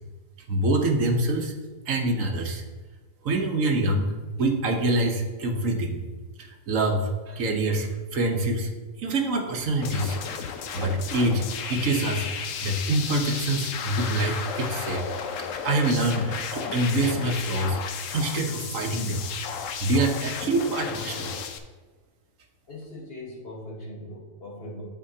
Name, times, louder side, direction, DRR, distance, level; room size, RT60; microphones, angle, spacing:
voice 1, 0.5-1.5 1.9-2.6 3.2-4.1 4.4-6.0 6.4-8.7 9.0-10.2 10.5-15.0 15.6-17.8 18.1-19.2 19.8-21.4, right 2 dB, 80° right, 2 dB, 1.4 m, -25 dB
sound 1, 9.8-21.6, left 7 dB, 80° left, 1.0 m, -34 dB
voice 2, 22.7-24.8, left 1 dB, 50° left, -2 dB, 1.7 m, -40 dB
9.0 x 7.3 x 2.8 m, 1.4 s
omnidirectional pair, 1.3 m